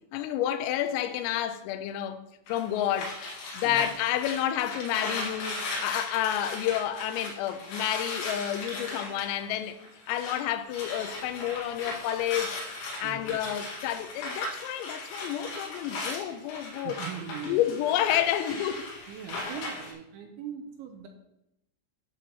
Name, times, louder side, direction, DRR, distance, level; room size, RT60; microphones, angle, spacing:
voice 1, 0.1-3.2 3.5-9.8 10.1-12.6 13.0-17.0 17.4-18.8, left 11 dB, 90° left, 3.4 m, -30 dB
sound 1, 2.5-10.4 10.7-19.9, left 2 dB, 65° left, 3.9 m, -37 dB
voice 2, 13.0-13.4 16.8-17.6 19.1-21.1, right 9 dB, 80° right, 2.9 m, -40 dB
11.0 x 4.1 x 7.5 m
omnidirectional pair, 6.0 m